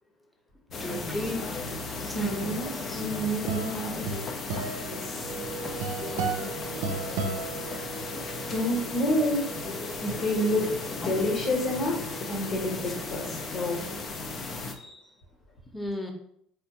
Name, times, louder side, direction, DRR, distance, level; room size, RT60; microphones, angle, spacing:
sound 1, 0.7-14.7, left 3 dB, 40° left, 0.6 m, -35 dB
voice 1, 0.8-1.4 1.7-1.8 2.0-2.5 2.9-3.0 15.7-16.1, left 1 dB, 10° left, 3 dB, 0.9 m, -34 dB
voice 2, 2.1-4.1 4.9-5.2 7.6-8.1 8.5-9.4 10.0-10.6 11.0-13.8 14.8-15.0, equal, 55° left, -3 dB, 1.3 m, -29 dB
sound 2, 2.9-8.3, right 4 dB, 70° right, 0.5 m, -34 dB
sound 3, 5.2-13.5, right 5 dB, 35° right, 0.8 m, -43 dB
4.1 x 3.4 x 2.9 m, 0.69 s
hypercardioid pair, 60°, 0 cm